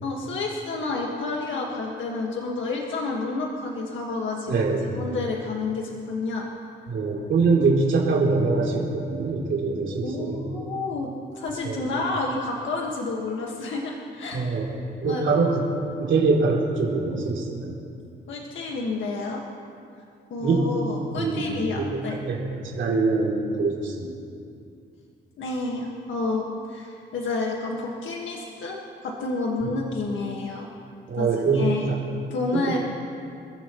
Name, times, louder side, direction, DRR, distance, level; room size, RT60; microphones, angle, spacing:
voice 1, 0.0-4.7 4.9-6.5 9.9-14.7 15.1-15.2 18.3-19.4 20.3-22.2 25.4-28.8 29.0-30.7 31.2-31.3 31.5-31.9 32.3-32.8, left 3 dB, 80° left, -2 dB, 1.8 m, -30 dB
voice 2, 4.5-4.9 6.9-10.5 11.6-11.8 14.3-14.7 15.0-15.6 16.0-17.8 20.4-20.6 21.2-24.1 29.6-29.7 31.1-32.0 32.5-32.8, right 4 dB, 85° right, -3 dB, 3.4 m, -24 dB
28.5 x 15.0 x 3.2 m, 2.5 s
cardioid pair, 105°, 19 cm